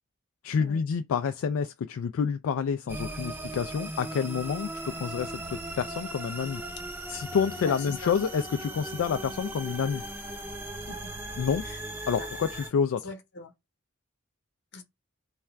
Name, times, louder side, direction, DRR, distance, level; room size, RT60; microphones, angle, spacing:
voice 1, 0.4-4.7 5.0-6.6 7.1-10.0 11.4-11.6 12.1-13.0, left 6 dB, 75° left, 0.3 m, -28 dB
sound 1, 2.9-12.7, right 1 dB, 10° right, 0.6 m, -38 dB
voice 2, 7.6-8.1 10.9-11.1 11.6-11.8 12.2-12.3 13.0-13.5 14.7-14.8, left 3 dB, 55° left, 0.9 m, -40 dB
3.2 x 2.4 x 4.4 m
head